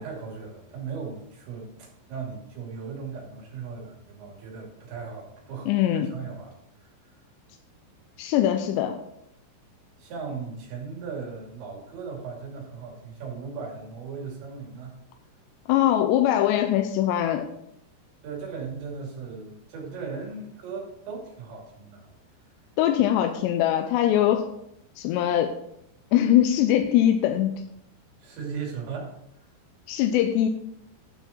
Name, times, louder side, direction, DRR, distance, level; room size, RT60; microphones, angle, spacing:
voice 1, 0.0-6.5 6.8-7.1 10.0-14.9 18.2-22.1 28.2-29.1, right 5 dB, 80° right, -2 dB, 5.0 m, -37 dB
voice 2, 5.7-6.1 8.2-9.0 15.7-17.5 22.8-24.5 25.0-25.6 26.1-27.6 29.9-30.5, left 11 dB, 85° left, 6 dB, 2.8 m, -22 dB
11.5 x 7.0 x 4.4 m, 0.75 s
omnidirectional pair, 5.0 m